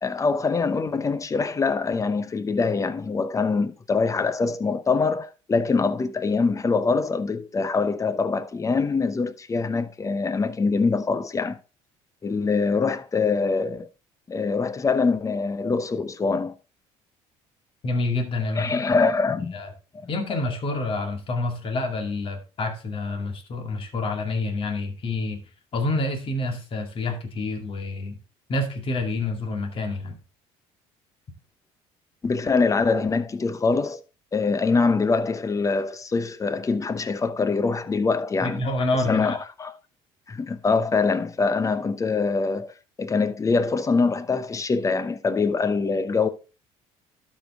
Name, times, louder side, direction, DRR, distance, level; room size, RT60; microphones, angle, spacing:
voice 1, 0.0-11.6 12.2-13.9 14.3-16.5 18.5-19.6 19.9-20.1 32.2-34.0 34.3-38.6 39.1-39.7 40.3-42.7 43.0-46.3, left 4 dB, 25° left, 0.8 m, -24 dB
voice 2, 17.8-18.7 19.5-19.7 20.1-25.4 25.7-28.2 28.5-30.2 38.4-39.4, left 2 dB, 45° left, 2.2 m, -28 dB
12.0 x 5.3 x 3.6 m
supercardioid pair, 95°, 13 cm